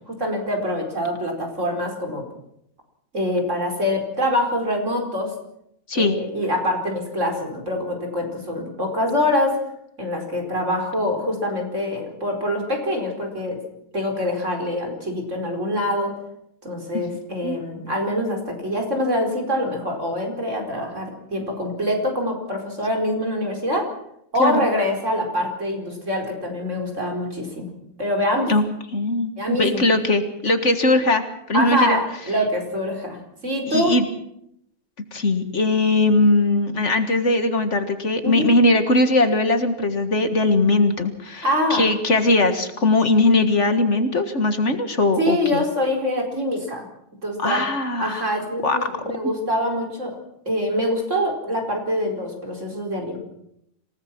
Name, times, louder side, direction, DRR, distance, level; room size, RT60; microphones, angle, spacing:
voice 1, 0.0-2.2 3.1-5.3 5.9-9.5 10.0-13.6 13.9-16.1 16.6-23.9 24.3-27.7 28.0-28.5 29.4-29.8 31.5-34.0 38.2-38.5 41.4-41.9 45.2-46.9 47.2-47.6 48.0-50.2 50.5-53.2, left 1 dB, 55° right, 2 dB, 4.9 m, -24 dB
voice 2, 28.9-32.0 33.7-34.1 35.1-41.4 41.7-45.6 47.4-48.4 48.6-48.8, left 2 dB, 55° left, 8 dB, 2.0 m, -20 dB
27.0 x 18.0 x 6.1 m, 0.76 s
omnidirectional pair, 1.5 m